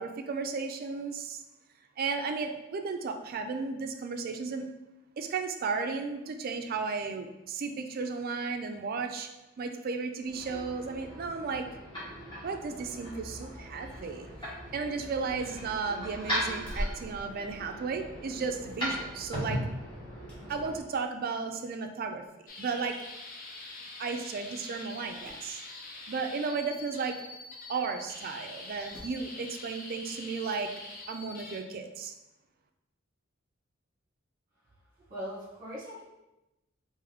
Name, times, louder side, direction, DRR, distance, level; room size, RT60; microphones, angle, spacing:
voice 1, 0.0-1.4 2.0-4.7 5.2-9.3 9.6-11.7 12.4-14.3 14.7-19.6 20.5-22.2 22.6-23.0 24.0-25.6 26.1-27.2 27.7-30.7 31.1-32.1, right 4 dB, 45° right, 6 dB, 0.4 m, -34 dB
sound 1, 10.2-20.8, equal, 25° left, 1.4 m, -38 dB
sound 2, 13.9-15.7 16.2-18.1 18.5-18.7 20.0-20.8 21.2-21.3 22.2-22.3 22.6-22.7 22.8-22.9 23.8-24.0 24.3-24.4 24.8-25.5 27.3-27.4 28.5-29.3 30.6-30.7, equal, 5° left, 1.0 m, -44 dB
sound 3, 22.5-31.6, left 2 dB, 45° left, 0.5 m, -45 dB
voice 2, 35.0-36.0, equal, 20° right, -8 dB, 1.1 m, -40 dB
3.4 x 2.6 x 3.5 m, 0.96 s
head